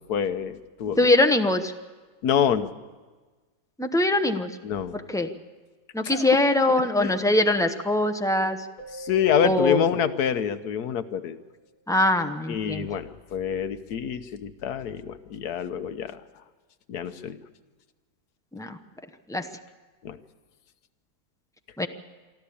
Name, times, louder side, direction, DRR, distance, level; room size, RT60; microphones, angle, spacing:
voice 1, 0.1-1.0 2.2-2.7 4.6-5.0 6.0-6.2 7.0-7.1 8.9-11.4 12.5-16.2 16.9-17.4 20.0-20.2, left 8 dB, 80° left, 11 dB, 1.4 m, -26 dB
voice 2, 1.0-1.7 3.8-4.5 4.9-5.3 5.9-8.6 9.4-9.8 11.9-12.9 18.5-18.8 19.3-19.5 21.8-21.9, left 2 dB, 5° left, 6 dB, 0.5 m, -22 dB
Keyboard (musical), 8.8-11.5, right 2 dB, 65° left, 1.7 m, -44 dB
24.5 x 13.0 x 8.5 m, 1.3 s
omnidirectional pair, 1.7 m